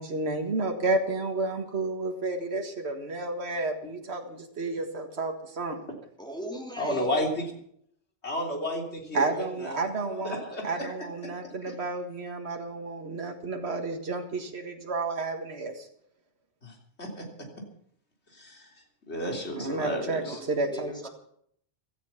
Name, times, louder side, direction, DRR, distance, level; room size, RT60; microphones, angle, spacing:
voice 1, 0.0-5.8 9.1-15.9 19.6-21.1, right 3 dB, 70° right, 3 dB, 2.0 m, -31 dB
voice 2, 6.2-7.2 20.0-21.1, equal, 5° left, 1 dB, 3.1 m, -40 dB
voice 3, 6.8-7.5 8.2-9.8 10.1-10.9 16.6-16.7 17.0-17.1 18.4-18.6 19.1-20.4, equal, 75° left, 1 dB, 3.7 m, -32 dB
16.5 x 13.5 x 5.8 m, 0.66 s
omnidirectional pair, 1.1 m